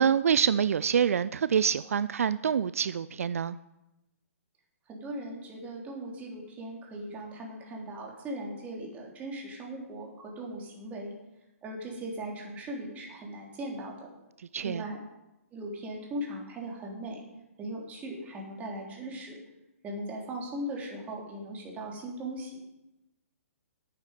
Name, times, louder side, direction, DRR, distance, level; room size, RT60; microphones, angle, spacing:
voice 1, 0.0-3.6 14.4-14.8, right 7 dB, 70° right, 16 dB, 0.3 m, -26 dB
voice 2, 4.9-11.1 11.6-14.1 14.6-15.0 15.5-17.2 17.6-19.4 19.8-22.6, right 1 dB, 20° right, -2 dB, 3.3 m, -39 dB
9.7 x 9.0 x 6.7 m, 0.95 s
hypercardioid pair, 135°, 8 cm